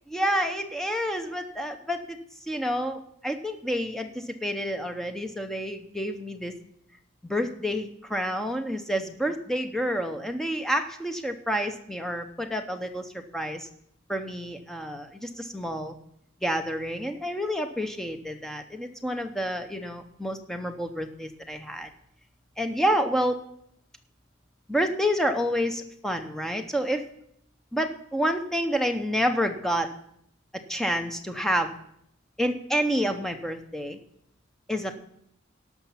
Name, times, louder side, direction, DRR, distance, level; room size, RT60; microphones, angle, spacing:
voice 1, 0.1-6.5 7.2-13.7 14.1-16.0 16.4-21.9 22.6-23.4 24.7-27.0 27.7-29.9 30.7-31.7 32.4-34.0 34.7-35.0, equal, ahead, 6 dB, 0.7 m, -29 dB
17.5 x 5.9 x 5.7 m, 0.74 s
head